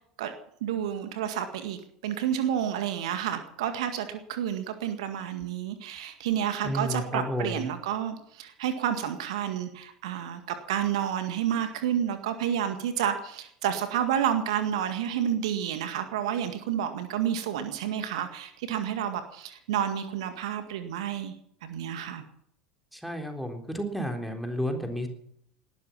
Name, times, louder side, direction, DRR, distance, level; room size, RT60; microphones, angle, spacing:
voice 1, 0.6-21.3 21.6-22.2, right 9 dB, 60° right, 9 dB, 1.9 m, -30 dB
voice 2, 6.6-7.7 22.9-25.1, equal, ahead, 4 dB, 3.8 m, -31 dB
19.5 x 12.5 x 6.0 m, 0.70 s
figure-of-eight pair, 75°, 4 cm